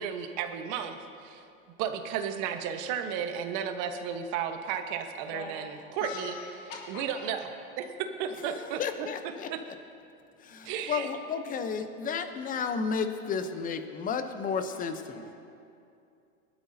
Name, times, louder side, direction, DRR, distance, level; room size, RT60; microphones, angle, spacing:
voice 1, 0.0-1.4 1.8-5.6 6.0-6.3 6.9-7.5 7.8-9.1 9.5-9.6 10.6-11.1, right 8 dB, 45° right, 7 dB, 1.3 m, -33 dB
voice 2, 5.1-5.6 6.0-7.6 8.0-8.9 13.0-15.3, left 5 dB, 65° left, -3 dB, 2.6 m, -46 dB
voice 3, 8.4-9.5 10.4-15.3, left 5 dB, 20° left, 8 dB, 0.8 m, -33 dB
21.0 x 12.5 x 2.8 m, 2.5 s
hypercardioid pair, 120°, 43 cm